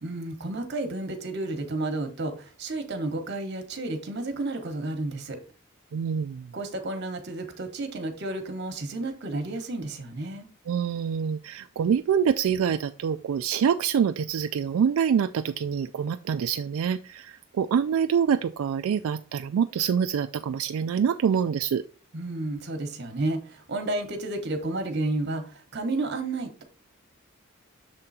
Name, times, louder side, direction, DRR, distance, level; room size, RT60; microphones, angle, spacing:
voice 1, 0.0-5.4 6.5-10.5 22.1-26.6, right 2 dB, 55° right, 6 dB, 1.1 m, -31 dB
voice 2, 5.9-6.5 10.7-21.8, right 7 dB, 80° right, 8 dB, 0.3 m, -26 dB
6.8 x 3.7 x 4.1 m, 0.36 s
head